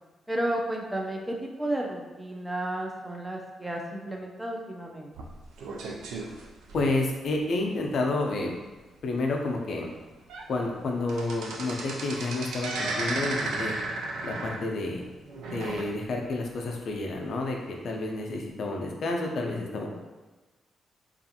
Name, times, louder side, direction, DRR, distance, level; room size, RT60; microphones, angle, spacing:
voice 1, 0.3-5.3, right 1 dB, 10° right, 0 dB, 0.4 m, -32 dB
sound 1, 5.1-7.3 7.8-8.0 8.3-8.4 9.0-9.1 9.7-9.8 10.1-10.5 10.8-16.3 16.7-16.8 17.6-17.7, right 2 dB, 85° right, 0.3 m, -34 dB
voice 2, 6.7-8.6 9.0-9.9 10.5-13.7 14.2-15.0 15.5-19.9, left 2 dB, 65° left, 1 dB, 0.4 m, -30 dB
2.4 x 2.4 x 2.7 m, 1.2 s
supercardioid pair, 55°, 0 cm